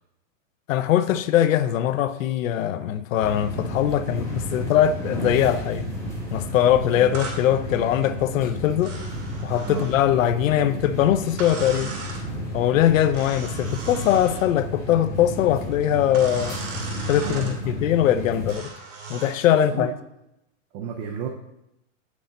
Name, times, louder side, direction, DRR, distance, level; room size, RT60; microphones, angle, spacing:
voice 1, 0.7-5.9 6.3-8.9 9.4-11.9 12.5-16.6 17.0-18.7 19.1-19.9, left 11 dB, 80° left, 0.6 m, -21 dB
Atmo Intercity, 3.2-18.5, equal, 10° left, 1.7 m, -33 dB
voice 2, 6.6-7.2 9.6-9.9 17.1-17.9 19.5-19.9 20.7-21.3, right 7 dB, 25° right, 0.4 m, -34 dB
sound 1, 7.1-7.4 8.8-10.0 11.4-12.3 13.1-14.5 16.1-17.6 18.5-19.4, right 3 dB, 65° right, 2.6 m, -37 dB
8.4 x 6.2 x 3.9 m
supercardioid pair, 155°, 39 cm